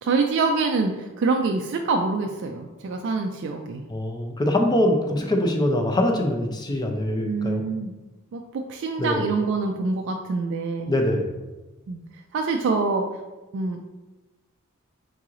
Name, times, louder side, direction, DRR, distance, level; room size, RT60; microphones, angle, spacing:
voice 1, 0.0-3.8 7.2-7.9 8.3-10.9 11.9-12.0 12.3-13.0 13.5-13.8, right 4 dB, 60° right, 3 dB, 0.3 m, -25 dB
voice 2, 3.9-7.6 9.0-9.2 10.9-11.3, left 1 dB, 20° left, 3 dB, 0.5 m, -23 dB
3.8 x 3.0 x 3.7 m, 1.1 s
head